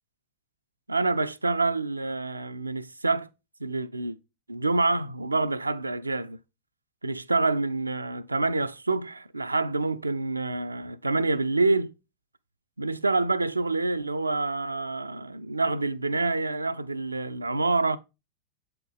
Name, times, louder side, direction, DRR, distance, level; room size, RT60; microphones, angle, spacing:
voice 1, 0.9-3.3 3.6-4.2 4.5-6.4 7.0-11.9 12.8-18.0, right 3 dB, 80° right, 0.4 m, -27 dB
7.9 x 4.5 x 3.5 m
figure-of-eight pair, 90°, 0 cm